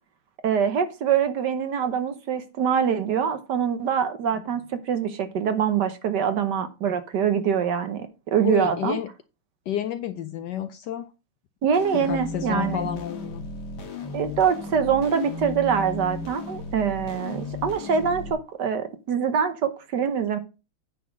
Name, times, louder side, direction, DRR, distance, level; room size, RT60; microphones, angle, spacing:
voice 1, 0.4-9.0 11.6-12.8 14.1-20.4, right 7 dB, 60° right, 1.4 m, -24 dB
voice 2, 8.4-9.1 9.7-11.1 11.9-13.5, left 10 dB, 70° left, 1.0 m, -30 dB
sound 1, 11.7-18.3, left 2 dB, 55° left, 1.8 m, -35 dB
9.4 x 3.8 x 6.2 m
omnidirectional pair, 2.3 m